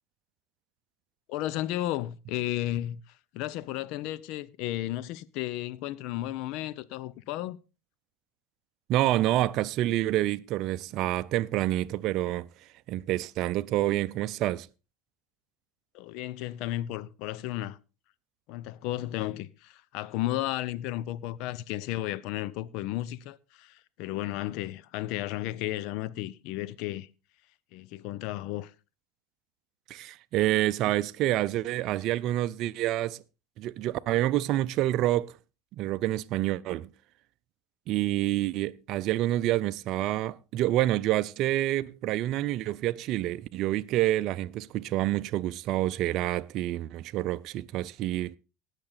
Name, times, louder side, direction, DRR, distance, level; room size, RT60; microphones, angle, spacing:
voice 1, 1.3-7.6 15.9-17.8 18.5-27.1 27.7-28.7, left 15 dB, 65° left, 0.7 m, -33 dB
voice 2, 8.9-12.5 12.9-14.7 29.9-33.2 33.6-35.3 35.8-36.9 37.9-48.4, right 14 dB, 55° right, 0.5 m, -28 dB
18.5 x 6.7 x 4.0 m
hypercardioid pair, 85°, 0 cm